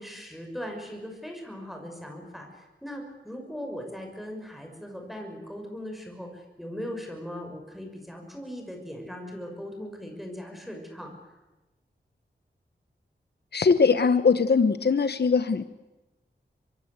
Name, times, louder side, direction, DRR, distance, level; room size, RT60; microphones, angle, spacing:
voice 1, 0.0-11.1, equal, ahead, 2 dB, 6.3 m, -39 dB
voice 2, 13.5-15.6, left 5 dB, 60° left, 12 dB, 0.9 m, -21 dB
24.5 x 22.5 x 8.1 m, 1.1 s
wide cardioid pair, 55°, 19 cm